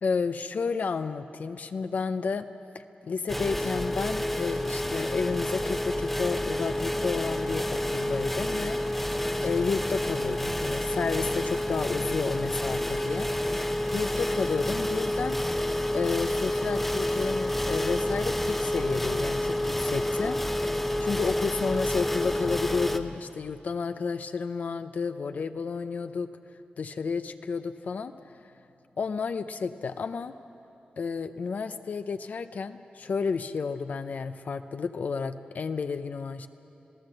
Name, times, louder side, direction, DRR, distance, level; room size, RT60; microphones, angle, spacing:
voice 1, 0.0-2.5 2.7-8.8 9.4-13.3 13.9-15.4 15.9-26.3 26.8-28.5 29.0-30.3 31.0-36.5, left 5 dB, 60° left, 10 dB, 0.6 m, -31 dB
sound 1, 3.3-23.0, left 1 dB, 5° left, 0.8 m, -29 dB
27.5 x 17.5 x 7.8 m, 2.9 s
wide cardioid pair, 170°, 3 cm